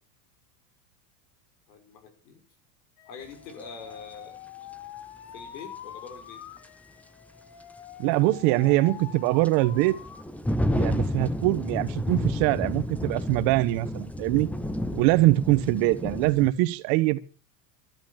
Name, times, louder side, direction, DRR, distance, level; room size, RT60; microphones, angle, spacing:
voice 1, 1.7-2.4 3.0-4.4 5.3-6.4, left 5 dB, 85° left, 6.1 m, -44 dB
Alarm, 3.0-10.2 10.6-11.2, left 10 dB, 50° left, 2.2 m, -45 dB
sound 1, 3.5-3.6 6.1-6.2 6.6-6.7 8.3-16.5, left 1 dB, 5° left, 0.7 m, -31 dB
voice 2, 8.0-10.0 10.8-14.5 14.9-17.2, right 18 dB, 55° right, 1.2 m, -23 dB
12.5 x 11.0 x 7.3 m
supercardioid pair, 140°, 49 cm